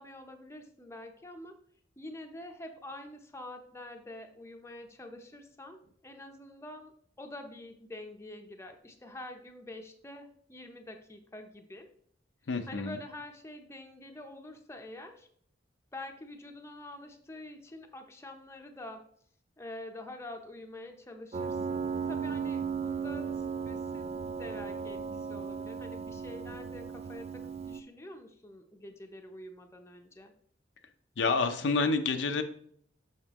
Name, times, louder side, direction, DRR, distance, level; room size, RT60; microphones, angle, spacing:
voice 1, 0.0-1.6 2.0-11.9 12.7-15.3 15.9-19.0 19.6-30.3, left 1 dB, 15° left, 4 dB, 0.7 m, -46 dB
voice 2, 12.5-13.0 31.2-32.4, left 4 dB, 85° left, 7 dB, 0.6 m, -28 dB
Piano, 21.3-27.8, right 6 dB, 35° right, 0.3 m, -36 dB
6.5 x 6.1 x 3.0 m, 0.62 s
head